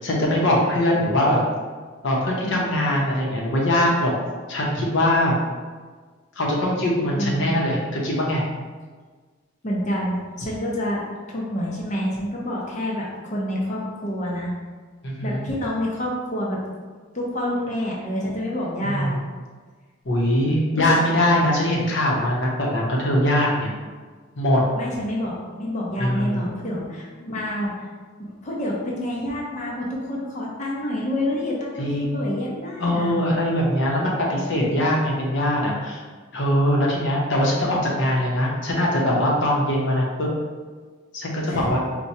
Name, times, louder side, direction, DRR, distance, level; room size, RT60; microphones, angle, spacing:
voice 1, 0.0-1.4 2.0-4.2 4.5-5.4 6.4-8.4 15.0-15.4 18.8-19.1 20.0-23.7 24.4-24.6 26.0-26.4 31.8-32.2 32.8-36.0 36.3-40.3 41.1-41.8, left 1 dB, 60° left, -3 dB, 0.8 m, -22 dB
voice 2, 7.1-7.5 9.6-11.0 11.3-14.5 15.2-16.6 17.1-19.1 20.7-20.9 24.7-27.9 28.2-33.2 41.5-41.7, equal, 35° left, -3 dB, 0.6 m, -28 dB
4.4 x 2.2 x 2.7 m, 1.5 s
head